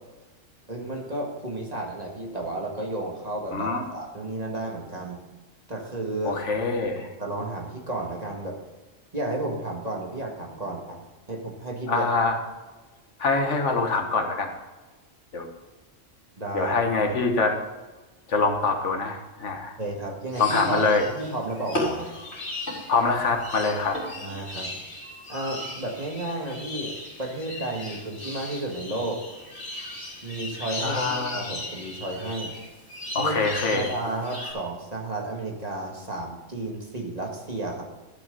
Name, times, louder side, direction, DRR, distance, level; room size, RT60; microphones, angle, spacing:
voice 1, 0.7-5.2 5.7-6.4 7.0-8.6 9.1-11.0 11.3-12.1 16.4-16.8 19.8-22.1 24.2-24.7 25.3-29.2 30.2-32.5 33.1-33.4 33.7-37.8, right 2 dB, 35° right, -1 dB, 1.8 m, -32 dB
voice 2, 3.5-3.8 6.2-7.1 11.9-12.4 13.2-14.5 15.3-15.5 16.5-17.6 18.3-19.7 20.4-21.1 22.9-24.0 30.8-31.5 33.1-33.9, left 4 dB, 70° left, 4 dB, 1.6 m, -24 dB
sound 1, 20.3-34.5, left 1 dB, 55° left, 2.9 m, -36 dB
12.5 x 6.1 x 5.4 m, 1.2 s
omnidirectional pair, 1.3 m